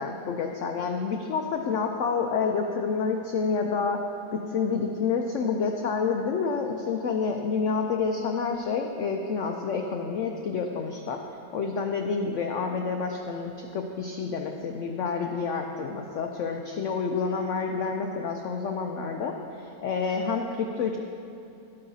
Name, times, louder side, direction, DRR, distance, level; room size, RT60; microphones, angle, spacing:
voice 1, 0.0-4.0 4.3-11.2 11.5-21.0, left 5 dB, 80° left, 3 dB, 0.6 m, -28 dB
12.0 x 9.3 x 2.7 m, 2.9 s
omnidirectional pair, 1.8 m